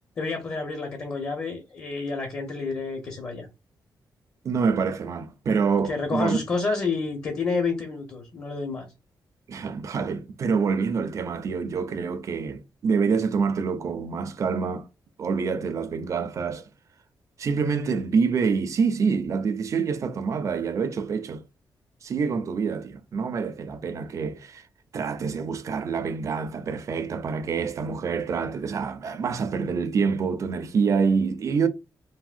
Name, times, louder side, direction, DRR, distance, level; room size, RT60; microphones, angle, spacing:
voice 1, 0.2-3.5 5.8-8.9, left 4 dB, 40° left, 0.7 m, -29 dB
voice 2, 4.4-6.4 9.5-14.9 15.2-16.7 17.4-21.4 22.0-24.6 24.9-31.7, right 5 dB, 45° right, 0.4 m, -26 dB
3.4 x 2.1 x 2.4 m
wide cardioid pair, 135°, 7 cm